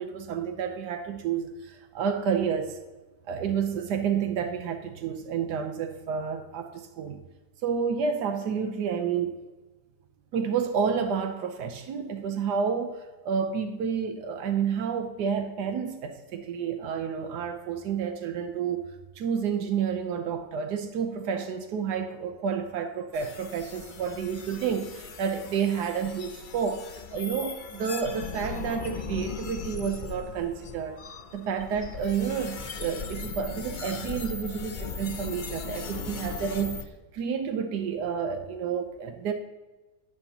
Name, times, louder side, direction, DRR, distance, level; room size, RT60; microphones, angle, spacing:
voice 1, 0.0-2.8 3.3-7.2 7.6-9.3 10.3-18.9 19.2-31.0 31.3-36.9 37.1-39.3, right 7 dB, 85° right, 6 dB, 1.4 m, -30 dB
sound 1, 23.1-36.8, left 5 dB, 50° left, 0.6 m, -38 dB
13.0 x 8.7 x 2.9 m, 1.2 s
omnidirectional pair, 1.7 m